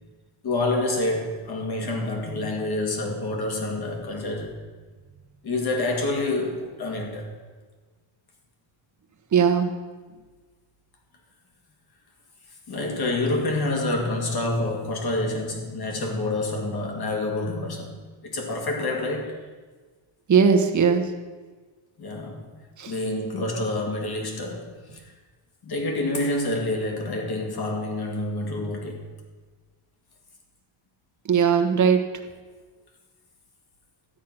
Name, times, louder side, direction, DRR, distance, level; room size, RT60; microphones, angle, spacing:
voice 1, 0.4-4.6 5.4-7.3 12.7-19.4 22.0-22.5 22.9-25.0 25.6-29.1, left 2 dB, 50° left, 2.3 m, -27 dB
voice 2, 9.3-9.7 20.3-21.0 22.8-22.9 31.3-32.1, right 6 dB, 35° right, 1.2 m, -19 dB
12.5 x 9.5 x 6.0 m
wide cardioid pair, 170°, 49 cm